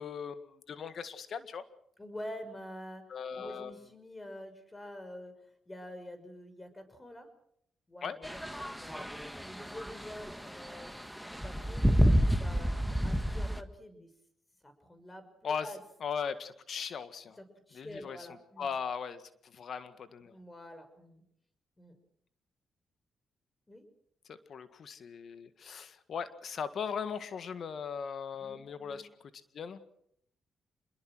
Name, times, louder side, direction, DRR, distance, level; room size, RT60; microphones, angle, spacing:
voice 1, 0.0-1.6 3.1-3.7 8.0-8.2 15.4-15.7 16.0-17.4 17.7-18.2 18.6-20.3 24.3-29.1 29.5-29.8, left 6 dB, 65° left, 12 dB, 1.8 m, -38 dB
voice 2, 2.0-3.1 3.4-7.3 7.9-8.4 8.7-10.9 11.3-12.7 13.0-14.1 14.6-15.8 17.4-18.8 20.2-21.2 21.8-22.0 23.7-23.8 28.4-29.0, left 1 dB, 20° left, 9 dB, 6.0 m, -47 dB
sound 1, 8.2-13.6, equal, ahead, 1.6 m, -30 dB
26.5 x 22.0 x 6.3 m, 0.72 s
supercardioid pair, 55°, 0 cm